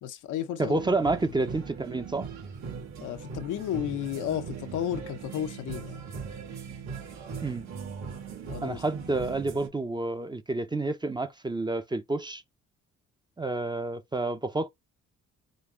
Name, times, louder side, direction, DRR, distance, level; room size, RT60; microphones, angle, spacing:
voice 1, 0.0-0.9 1.3-1.4 3.0-6.0 8.4-8.8, left 11 dB, 80° left, 0.7 m, -33 dB
voice 2, 0.6-2.3 7.4-7.7 8.6-12.4 13.4-14.7, right 2 dB, 15° right, 0.6 m, -29 dB
sound 1, 0.7-9.7, right 6 dB, 70° right, 2.4 m, -40 dB
5.2 x 2.3 x 3.6 m
cardioid pair, 90°, 30 cm